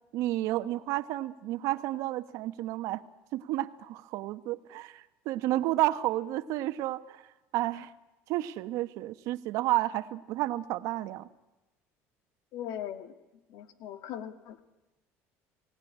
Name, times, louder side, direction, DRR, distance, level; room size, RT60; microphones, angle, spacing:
voice 1, 0.1-3.0 3.3-7.3 7.5-7.9 8.3-11.3, right 16 dB, 70° right, 12 dB, 1.1 m, -31 dB
voice 2, 12.5-13.1 13.5-14.6, left 10 dB, 70° left, 10 dB, 2.0 m, -39 dB
28.0 x 18.0 x 10.0 m, 1.0 s
cardioid pair, 125°, 6 cm